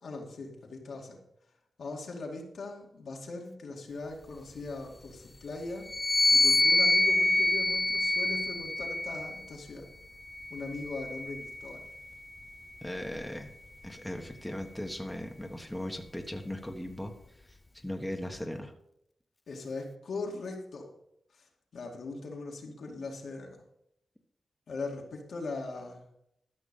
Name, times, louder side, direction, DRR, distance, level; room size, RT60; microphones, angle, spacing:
voice 1, 0.0-1.2 1.8-5.9 6.3-9.9 10.5-11.9 19.5-20.9 21.3-21.4 21.7-23.6 24.7-26.0, left 3 dB, 75° left, 0 dB, 2.3 m, -40 dB
sound 1, 5.9-9.5 10.3-11.9, left 2 dB, 25° left, 0.6 m, -26 dB
voice 2, 12.8-13.5 13.8-17.1 17.5-17.6 17.8-18.7, left 1 dB, 5° left, 3 dB, 1.4 m, -38 dB
13.0 x 6.1 x 5.4 m, 0.78 s
cardioid pair, 65°, 0 cm